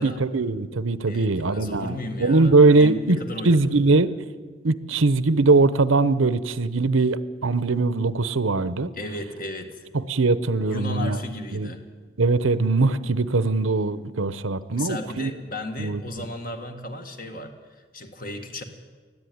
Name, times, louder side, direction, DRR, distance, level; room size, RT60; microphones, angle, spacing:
voice 1, 0.0-3.2 3.4-4.1 4.6-8.9 9.9-11.2 11.5-11.7 12.2-15.3 15.8-16.0, right 3 dB, 90° right, 16 dB, 0.8 m, -21 dB
voice 2, 1.1-4.1 8.9-9.9 10.7-11.8 14.7-18.6, left 1 dB, 45° left, 6 dB, 1.8 m, -34 dB
20.5 x 14.0 x 9.4 m, 1.5 s
head